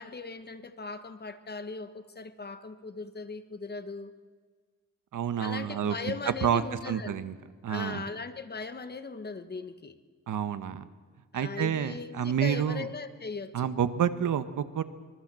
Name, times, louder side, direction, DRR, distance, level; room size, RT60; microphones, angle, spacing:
voice 1, 0.0-4.1 5.4-7.2 7.7-10.0 11.3-13.7, left 4 dB, 30° left, 1.3 m, -39 dB
voice 2, 5.1-7.3 7.6-8.0 10.3-10.9 11.3-12.9 13.5-14.8, right 8 dB, 70° right, 1.3 m, -29 dB
25.5 x 21.5 x 7.6 m
wide cardioid pair, 135°, 32 cm